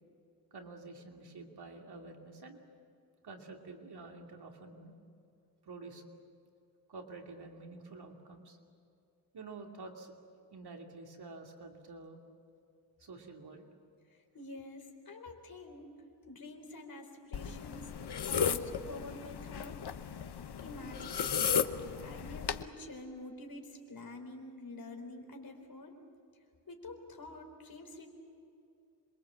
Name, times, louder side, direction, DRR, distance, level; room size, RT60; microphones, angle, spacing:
voice 1, 0.5-2.6 3.2-4.9 5.6-6.0 6.9-8.6 9.3-10.1 10.5-12.2 13.0-13.7, right 3 dB, 75° right, 2 dB, 2.8 m, -49 dB
voice 2, 14.1-17.9 18.2-19.8 20.6-21.6 22.0-26.0 26.7-28.1, left 2 dB, 60° left, 3 dB, 4.2 m, -48 dB
sound 1, 17.3-22.6, left 7 dB, 85° left, 1.0 m, -35 dB
27.0 x 23.5 x 7.5 m, 2.5 s
wide cardioid pair, 170°, 39 cm